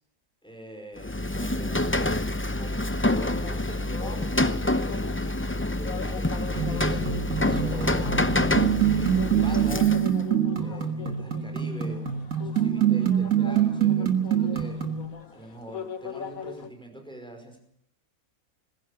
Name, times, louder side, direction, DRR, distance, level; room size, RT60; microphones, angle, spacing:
voice 1, 0.4-2.2 2.6-5.0 5.7-8.2 8.8-9.9 10.6-14.8 15.3-17.6, right 1 dB, 5° left, 4 dB, 5.1 m, -43 dB
Rain, 1.0-10.2, left 1 dB, 20° left, 0.3 m, -27 dB
sound 1, 3.1-16.7, left 6 dB, 65° left, 1.9 m, -41 dB
sound 2, 6.6-15.1, right 9 dB, 60° right, 2.1 m, -25 dB
20.0 x 16.0 x 8.3 m, 0.70 s
omnidirectional pair, 1.6 m